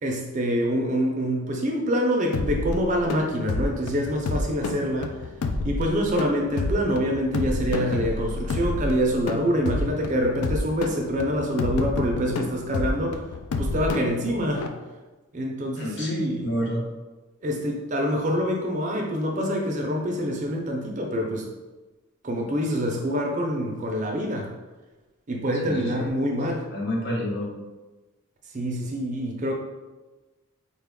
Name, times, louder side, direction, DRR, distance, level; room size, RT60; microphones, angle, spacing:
voice 1, 0.0-5.2 5.6-13.2 13.6-14.7 15.3-16.5 17.4-21.5 22.2-24.5 25.3-26.6 28.5-29.5, equal, 35° right, 1 dB, 0.4 m, -26 dB
sound 1, 2.3-14.7, left 2 dB, 80° left, 0.4 m, -29 dB
voice 2, 15.7-16.8 25.6-26.1 26.7-27.6, equal, 50° left, -3 dB, 0.9 m, -29 dB
4.2 x 2.2 x 3.5 m, 1.2 s
head